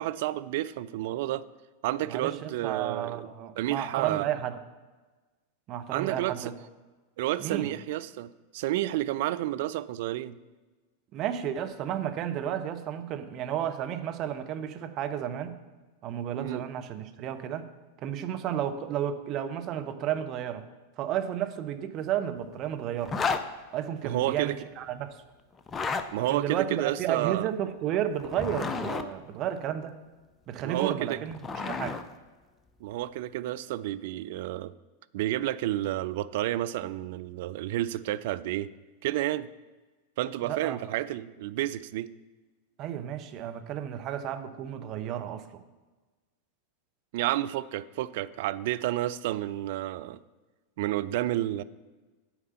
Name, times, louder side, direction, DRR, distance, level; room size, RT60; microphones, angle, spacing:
voice 1, 0.0-1.4 1.8-3.3 3.6-4.3 5.9-6.5 7.2-10.4 16.4-16.7 24.0-24.6 26.1-27.5 30.6-31.2 32.8-34.7 35.1-38.7 39.0-39.5 40.2-42.1 47.1-50.2 50.8-51.6, right 14 dB, 50° right, 14 dB, 0.3 m, -30 dB
voice 2, 2.1-4.5 5.7-6.5 7.4-7.7 11.1-15.6 16.0-17.7 18.0-20.6 21.0-23.2 23.7-25.2 26.3-29.9 30.5-31.4 31.6-32.0 40.5-40.8 42.8-45.4, right 10 dB, 35° right, 8 dB, 0.7 m, -32 dB
Zipper (clothing), 23.0-23.4 25.6-26.1 28.2-29.1 30.9-32.0, left 5 dB, 20° left, 0.5 m, -31 dB
8.8 x 4.7 x 6.9 m, 1.2 s
figure-of-eight pair, 90°, 0 cm